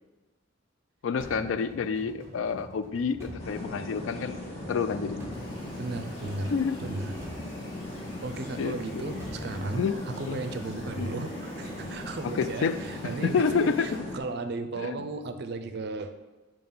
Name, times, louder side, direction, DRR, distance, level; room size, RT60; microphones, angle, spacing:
voice 1, 1.0-4.4 4.7-5.3 6.5-6.8 8.6-9.2 9.8-9.9 10.2-10.4 11.0-11.1 12.2-12.8 13.0-14.0 14.8-15.0, left 5 dB, 85° left, 12 dB, 0.3 m, -29 dB
sound 1, 1.2-10.4, equal, 15° right, 1.0 m, -46 dB
sound 2, 3.4-14.2, left 1 dB, 35° left, 1.1 m, -39 dB
sound 3, 5.3-14.0, left 1 dB, 65° left, 1.5 m, -53 dB
voice 2, 5.8-6.5 6.8-7.1 8.2-16.1, right 3 dB, 55° right, 9 dB, 0.4 m, -35 dB
4.8 x 3.8 x 5.5 m, 1.2 s
head